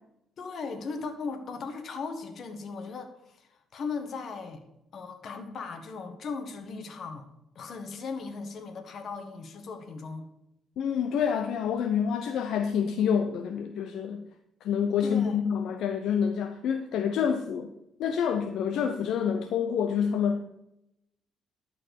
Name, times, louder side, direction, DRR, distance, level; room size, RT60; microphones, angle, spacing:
voice 1, 0.4-4.6 4.9-7.3 7.5-10.3 15.0-15.4, left 4 dB, 60° left, 7 dB, 1.4 m, -37 dB
voice 2, 10.8-14.3 14.6-17.7 18.0-20.4, left 7 dB, 80° left, 6 dB, 0.6 m, -27 dB
12.0 x 4.5 x 6.5 m, 0.85 s
cardioid pair, 90°, 0 cm